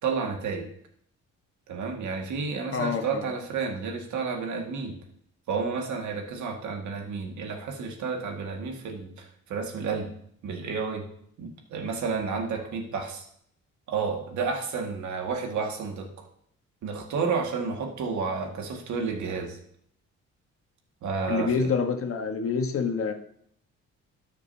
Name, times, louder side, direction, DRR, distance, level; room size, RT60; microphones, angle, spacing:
voice 1, 0.0-0.7 1.7-5.0 5.5-10.1 10.4-11.0 11.4-13.3 13.9-16.3 16.8-19.6 21.0-21.7, right 5 dB, 75° right, 3 dB, 2.0 m, -31 dB
voice 2, 2.7-3.2 21.3-23.1, left 5 dB, 45° left, 6 dB, 1.4 m, -27 dB
13.0 x 6.7 x 2.8 m, 0.67 s
cardioid pair, 90°, 30 cm